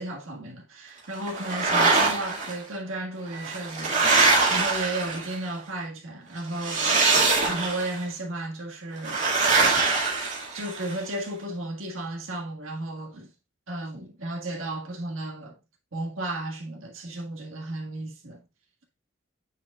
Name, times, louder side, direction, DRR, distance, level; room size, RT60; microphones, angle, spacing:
voice 1, 0.0-4.0 4.5-7.0 7.4-9.3 10.5-13.3 13.7-15.5 15.9-18.4, right 2 dB, 80° right, 1.6 m, -34 dB
sound 1, 1.3-2.5 3.3-5.5 6.6-8.0 9.0-10.9, right 3 dB, 35° right, 2.0 m, -23 dB
8.9 x 4.9 x 2.3 m
head